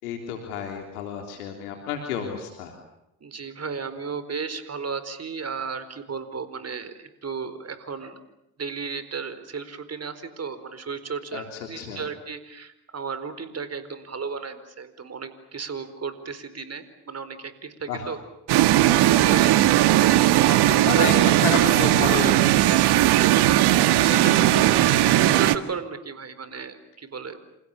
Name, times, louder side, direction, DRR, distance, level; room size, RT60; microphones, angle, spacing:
voice 1, 0.0-2.7 11.3-12.1 17.9-18.1 20.9-21.1 21.4-22.4 23.8-24.8, left 7 dB, 80° left, 3 dB, 3.7 m, -31 dB
voice 2, 3.2-8.2 8.6-18.2 18.9-20.0 20.3-21.6 22.1-22.3 25.0-27.4, right 5 dB, 35° right, 12 dB, 4.6 m, -34 dB
sound 1, 18.5-25.6, right 14 dB, 60° right, 1.7 m, -18 dB
28.5 x 28.5 x 7.0 m, 0.86 s
hypercardioid pair, 60°, 44 cm